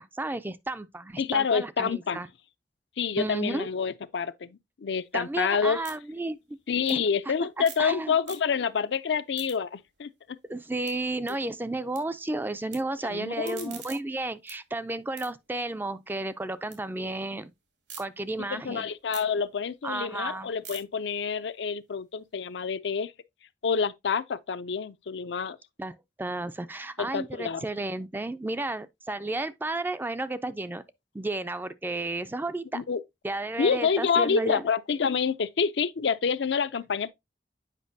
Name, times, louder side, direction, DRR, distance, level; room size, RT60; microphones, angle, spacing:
voice 1, 0.0-2.3 3.2-3.7 5.1-6.6 6.9-7.0 7.6-8.1 10.5-17.5 18.0-18.9 19.8-20.5 25.8-30.8 31.1-32.8 33.2-34.6, right 2 dB, 10° right, 0.3 m, -32 dB
voice 2, 1.2-2.2 3.0-5.8 6.7-10.1 13.0-13.8 18.4-23.1 23.6-25.6 27.0-27.6 32.7-33.0 33.6-37.1, left 6 dB, 75° left, 0.5 m, -28 dB
sound 1, 5.0-7.9 8.2-8.8 9.1-12.0 12.3-12.8 13.2-16.8 17.2-18.0 18.5-22.6, right 6 dB, 75° right, 2.3 m, -49 dB
8.3 x 5.1 x 2.6 m
head